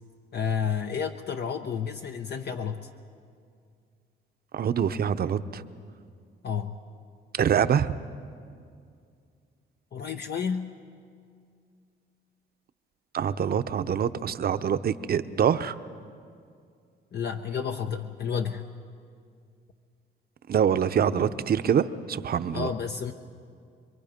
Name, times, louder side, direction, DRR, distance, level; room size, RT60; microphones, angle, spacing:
voice 1, 0.3-2.9 6.4-6.8 9.9-10.7 17.1-18.7 22.5-23.1, left 7 dB, 55° left, 5 dB, 0.8 m, -31 dB
voice 2, 4.5-5.6 7.4-7.9 13.1-15.8 20.5-22.7, right 8 dB, 50° right, 12 dB, 0.8 m, -25 dB
26.5 x 22.5 x 5.2 m, 2.3 s
cardioid pair, 90°, 20 cm